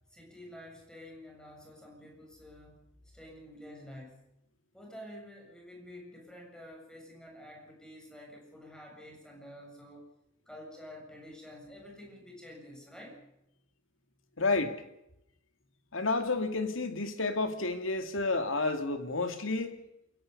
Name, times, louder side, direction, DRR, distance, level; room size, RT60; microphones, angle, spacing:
voice 1, 0.1-2.8 3.1-4.2 4.7-10.1 10.5-13.3, left 1 dB, 5° left, 7.4 m, -49 dB
voice 2, 14.4-14.8 15.9-19.8, left 3 dB, 70° left, 2.6 m, -30 dB
28.5 x 17.0 x 5.5 m
head